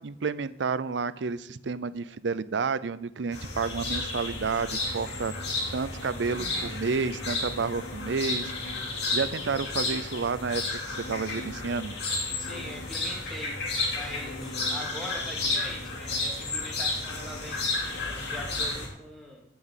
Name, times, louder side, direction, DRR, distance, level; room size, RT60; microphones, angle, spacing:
voice 1, 0.0-5.3 5.7-8.5 9.1-12.0, right 5 dB, 85° right, 16 dB, 0.5 m, -30 dB
sound 1, 3.3-18.9, left 3 dB, 60° left, 3.2 m, -32 dB
voice 2, 12.4-13.6 13.9-19.4, equal, ahead, -3 dB, 2.6 m, -42 dB
11.0 x 6.1 x 8.0 m, 0.79 s
head